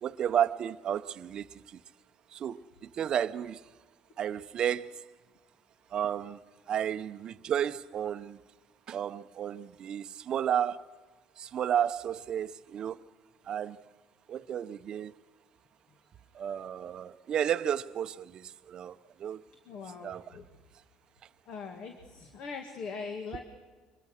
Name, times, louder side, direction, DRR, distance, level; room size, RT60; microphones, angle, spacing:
voice 1, 0.0-1.8 2.3-3.6 4.2-5.0 5.9-6.4 6.7-8.4 8.9-10.8 11.4-13.0 13.5-13.8 14.3-15.1 16.3-19.4 20.0-20.2, right 9 dB, 45° right, 0.7 m, -32 dB
voice 2, 19.7-20.5 21.5-23.4, left 5 dB, 55° left, 2.1 m, -41 dB
24.5 x 22.0 x 6.5 m
cardioid pair, 135°, 2 cm